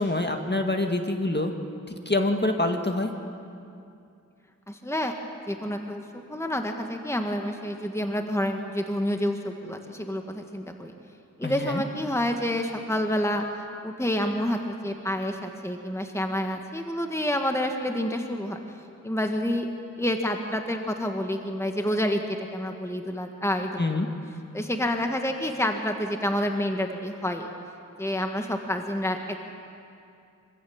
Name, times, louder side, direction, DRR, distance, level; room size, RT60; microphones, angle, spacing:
voice 1, 0.0-1.5 1.9-3.1 11.4-11.8 23.8-24.1, left 2 dB, 35° left, 4 dB, 1.9 m, -26 dB
voice 2, 4.7-5.1 5.5-10.9 11.4-13.4 13.8-18.6 19.0-19.7 20.0-23.8 24.5-27.5 28.0-29.4, left 1 dB, 10° left, 4 dB, 1.6 m, -28 dB
25.5 x 15.5 x 7.2 m, 2.5 s
cardioid pair, 40°, 32 cm